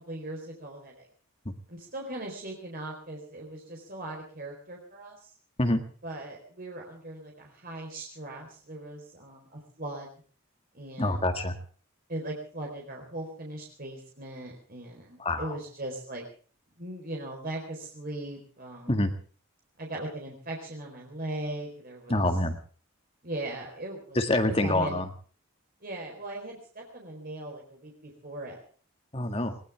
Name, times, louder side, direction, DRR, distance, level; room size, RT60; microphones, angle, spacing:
voice 1, 0.1-1.1 1.7-5.3 6.0-10.1 10.7-11.3 12.1-16.2 16.8-18.9 19.8-22.2 23.2-24.2 24.5-25.0 25.8-28.6, right 1 dB, 45° right, 0 dB, 4.2 m, -39 dB
voice 2, 11.0-11.6 15.2-15.6 18.9-19.1 22.1-22.6 24.2-25.1 29.1-29.6, left 1 dB, 25° left, 6 dB, 1.9 m, -26 dB
21.0 x 19.5 x 3.5 m, 0.43 s
head